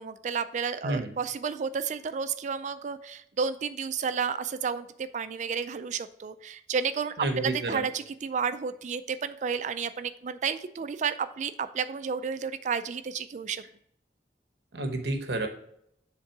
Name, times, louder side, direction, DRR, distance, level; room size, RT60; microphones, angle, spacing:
voice 1, 0.0-4.9 5.1-13.6, right 6 dB, 45° right, 12 dB, 0.3 m, -31 dB
voice 2, 7.2-7.8 14.7-15.5, right 2 dB, 65° right, 5 dB, 1.0 m, -30 dB
7.4 x 3.6 x 4.6 m, 0.70 s
head